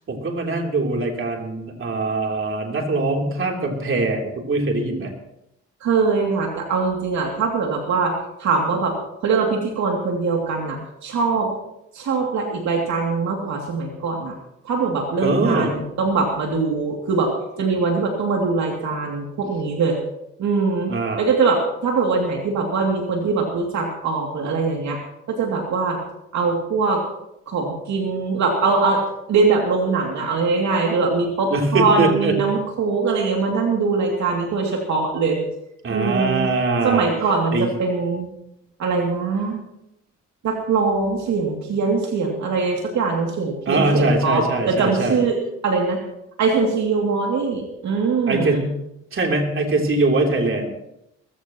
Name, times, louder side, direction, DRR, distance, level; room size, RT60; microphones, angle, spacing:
voice 1, 0.1-5.1 15.2-15.7 20.9-21.2 31.5-32.4 35.8-37.1 37.5-37.7 43.7-45.2 48.3-48.7 49.1-50.7, right 2 dB, 45° right, 1 dB, 3.4 m, -22 dB
voice 2, 5.8-8.9 9.2-11.5 11.9-14.4 14.6-17.3 17.6-20.0 20.4-25.0 25.3-26.0 26.3-27.0 27.5-29.0 29.3-35.4 35.9-36.5 36.8-38.3 38.8-39.6 40.4-45.4 45.6-46.0 46.4-48.6, right 4 dB, 65° right, 0 dB, 2.8 m, -22 dB
20.5 x 15.5 x 3.1 m, 0.82 s
cardioid pair, 90°, 30 cm